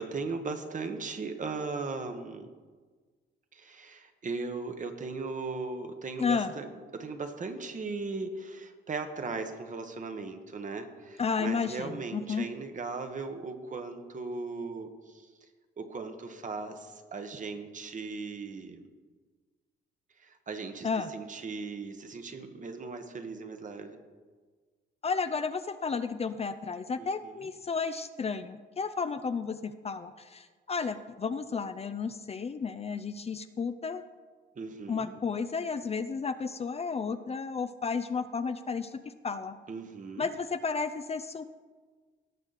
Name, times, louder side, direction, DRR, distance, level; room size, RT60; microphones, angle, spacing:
voice 1, 0.0-2.5 3.5-6.7 6.9-15.3 15.8-18.8 20.2-24.0 27.0-27.5 34.6-35.2 39.7-40.3, right 4 dB, 40° right, 7 dB, 1.2 m, -38 dB
voice 2, 11.2-12.5 20.8-21.1 25.0-34.0 34.9-39.6 40.2-41.5, left 5 dB, 30° left, 11 dB, 0.5 m, -32 dB
17.5 x 6.4 x 4.1 m, 1.5 s
cardioid pair, 90°, 20 cm